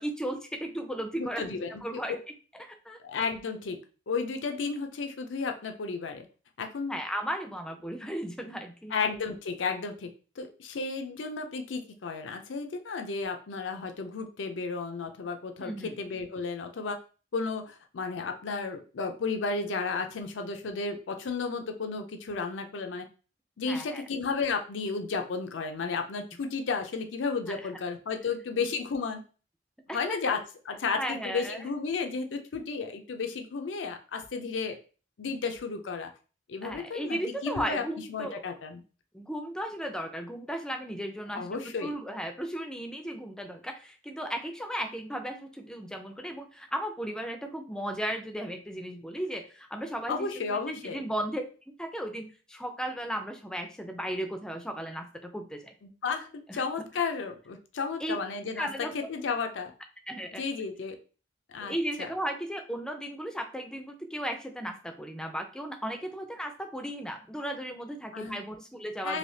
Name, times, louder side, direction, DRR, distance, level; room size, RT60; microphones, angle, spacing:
voice 1, 0.0-1.4 1.8-2.2 2.5-3.0 6.9-8.9 15.6-16.0 23.7-24.0 29.9-30.2 30.9-31.7 36.6-38.4 39.1-51.4 51.8-55.7 56.5-56.6 58.0-58.2 58.6-58.9 60.1-60.4 61.6-69.2, equal, 5° left, 5 dB, 0.4 m, -35 dB
voice 2, 1.2-2.2 3.0-3.8 4.1-6.3 6.6-7.0 8.9-10.1 10.4-17.0 17.3-23.1 23.6-29.2 29.9-34.8 35.2-36.1 36.5-37.8 38.1-38.8 41.3-41.9 50.1-51.0 55.8-58.7 58.9-59.7 60.4-61.0 61.5-61.7 62.0-62.1 68.1-68.4 69.0-69.2, left 4 dB, 85° left, 6 dB, 0.5 m, -33 dB
3.3 x 2.7 x 2.7 m, 0.37 s
head